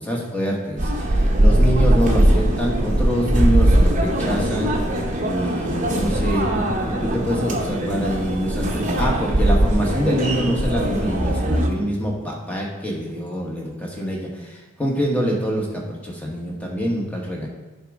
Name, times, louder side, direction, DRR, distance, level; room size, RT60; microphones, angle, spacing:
voice 1, 0.0-4.8 5.3-17.5, equal, 5° left, -2 dB, 1.1 m, -25 dB
sound 1, 0.8-11.7, right 1 dB, 35° right, 0.8 m, -20 dB
8.2 x 3.5 x 5.2 m, 1.2 s
head